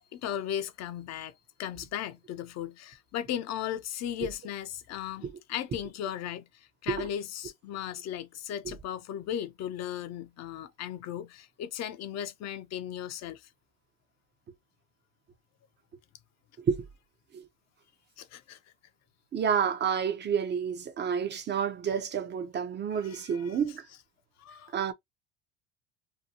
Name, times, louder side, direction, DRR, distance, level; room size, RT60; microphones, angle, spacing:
voice 1, 0.1-13.5 18.2-18.6 22.9-23.6 24.4-24.8, left 10 dB, 50° left, 0.6 m, -37 dB
voice 2, 19.3-23.8 24.7-24.9, right 7 dB, 30° right, 0.6 m, -29 dB
2.7 x 2.2 x 2.6 m
supercardioid pair, 85°, 35 cm